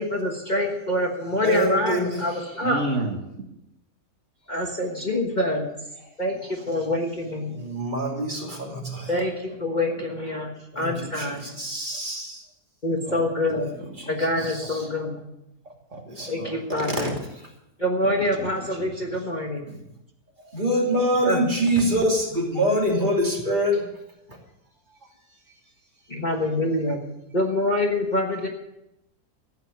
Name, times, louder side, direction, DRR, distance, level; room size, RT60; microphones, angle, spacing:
voice 1, 0.0-2.8 4.5-5.7 6.2-7.6 9.1-10.5 10.7-11.5 12.8-13.7 14.1-15.3 16.3-17.1 17.8-19.6 21.2-21.4 26.1-27.0 27.3-28.5, left 1 dB, 30° left, 1 dB, 1.5 m, -26 dB
voice 2, 1.4-2.2 7.5-9.2 10.7-12.4 14.0-14.1 14.4-14.8 16.1-17.1 20.5-23.9, equal, 30° right, -1 dB, 3.0 m, -25 dB
voice 3, 2.6-3.5 4.8-5.1 6.5-6.9 9.5-9.6 9.9-10.7 11.5-11.6 11.9-12.0 13.0-13.2 13.5-14.7 15.6-16.5 18.0-19.3 19.8-19.9 24.9-25.6, right 2 dB, 50° right, 1 dB, 2.1 m, -35 dB
14.5 x 9.1 x 6.9 m, 0.87 s
omnidirectional pair, 1.7 m